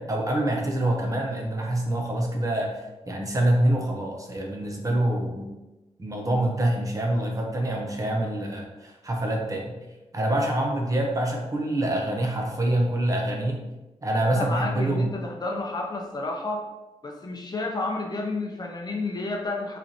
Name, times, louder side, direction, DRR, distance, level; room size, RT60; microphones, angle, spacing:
voice 1, 0.0-2.8 3.1-5.5 6.0-9.7 10.1-13.6 14.0-15.1, right 1 dB, 30° right, 0 dB, 0.9 m, -25 dB
voice 2, 14.3-16.7 17.0-19.8, left 2 dB, 35° left, 1 dB, 0.6 m, -31 dB
5.4 x 3.2 x 2.8 m, 1.1 s
wide cardioid pair, 95°, 11 cm